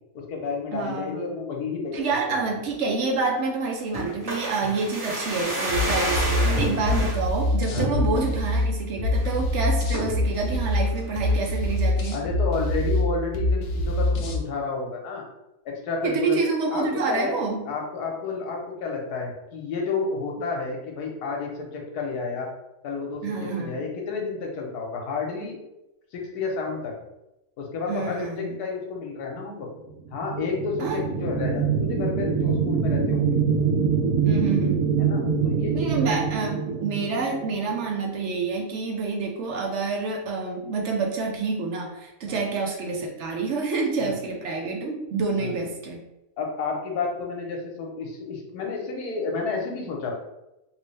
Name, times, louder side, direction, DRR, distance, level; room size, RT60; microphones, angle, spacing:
voice 1, 0.1-2.5 6.9-7.0 7.7-7.9 12.1-15.2 15.6-16.4 16.7-17.3 17.7-22.5 22.8-25.6 26.1-26.9 27.6-29.7 30.1-33.4 35.0-36.1 42.3-42.4 44.0-44.1 45.4-45.5 46.4-50.2, left 4 dB, 85° left, 0 dB, 1.3 m, -31 dB
voice 2, 0.7-1.3 1.9-12.2 16.0-17.6 23.2-23.8 27.9-28.6 30.8-31.1 34.2-34.8 35.7-46.0, right 4 dB, 60° right, 1 dB, 0.8 m, -28 dB
sound 1, 3.9-7.2 7.7-8.4 8.8-8.9 9.1-9.4 9.9-10.3 10.7-11.4 11.7-11.8, right 1 dB, 30° right, 1.0 m, -29 dB
sound 2, 5.7-14.4, left 1 dB, 70° left, 0.6 m, -25 dB
sound 3, 30.1-37.7, right 6 dB, 80° right, 1.1 m, -24 dB
3.0 x 2.9 x 3.2 m, 0.92 s
omnidirectional pair, 1.6 m